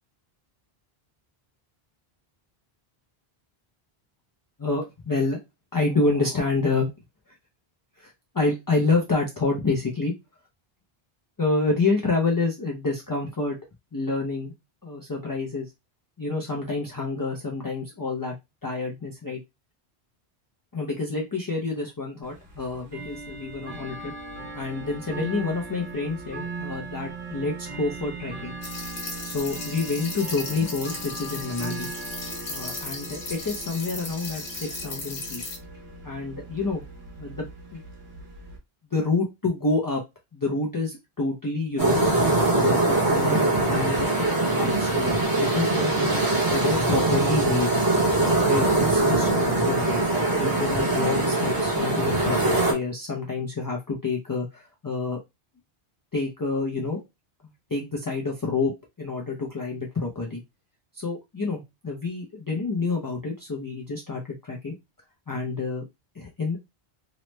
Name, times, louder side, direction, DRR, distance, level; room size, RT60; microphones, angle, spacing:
voice 1, 4.6-5.4 5.7-6.9 8.0-10.1 11.4-13.6 13.9-14.5 14.8-15.7 16.2-18.3 18.6-19.4 20.7-24.1 24.5-28.6 29.2-31.9 32.5-35.4 36.0-36.8 37.2-37.5 37.7-37.8 38.9-40.0 40.3-42.0 42.5-44.1 44.5-46.2 46.5-47.7 48.4-50.0 50.3-55.2 56.1-57.0 57.7-58.7 59.0-60.4 60.9-64.7 65.3-65.8 66.1-66.6, left 3 dB, 35° left, -2 dB, 0.3 m, -28 dB
Bell / Tick-tock, 22.2-38.6, right 3 dB, 80° right, 1.1 m, -39 dB
sound 1, 28.6-35.6, left 3 dB, 75° left, 1.1 m, -36 dB
sound 2, 41.8-52.7, right 2 dB, 25° right, 0.8 m, -22 dB
3.0 x 2.0 x 3.1 m, 0.23 s
omnidirectional pair, 1.0 m